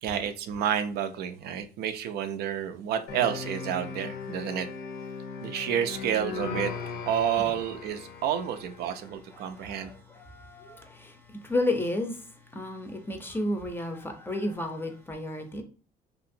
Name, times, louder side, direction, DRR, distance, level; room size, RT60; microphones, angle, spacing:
voice 1, 0.0-4.7 5.4-6.7 7.1-9.9, right 9 dB, 70° right, 0.4 m, -30 dB
sound 1, 3.1-9.0, left 5 dB, 65° left, 0.6 m, -38 dB
voice 2, 9.4-12.2 12.5-15.6, left 1 dB, 15° left, 0.5 m, -32 dB
2.8 x 2.5 x 2.6 m
cardioid pair, 110°, 17 cm